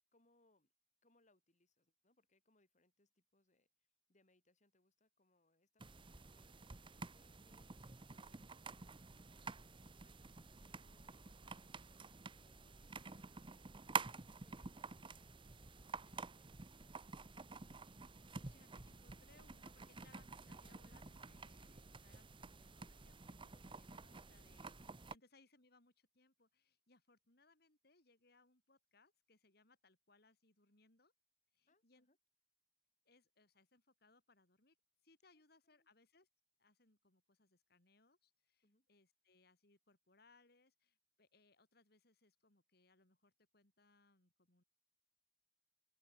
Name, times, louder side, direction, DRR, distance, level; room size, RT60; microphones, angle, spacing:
voice 1, 0.1-0.7 1.0-15.7 16.0-17.3 24.4-24.7 31.7-32.2 35.3-35.9 38.6-38.9, left 2 dB, 45° left, 6.6 m, -78 dB
sound 1, 5.8-25.2, right 4 dB, 30° right, 0.9 m, -50 dB
voice 2, 18.4-31.1 31.5-32.1 33.0-34.8 35.0-36.3 36.6-44.6, left 3 dB, 60° left, 4.2 m, -72 dB
open air
head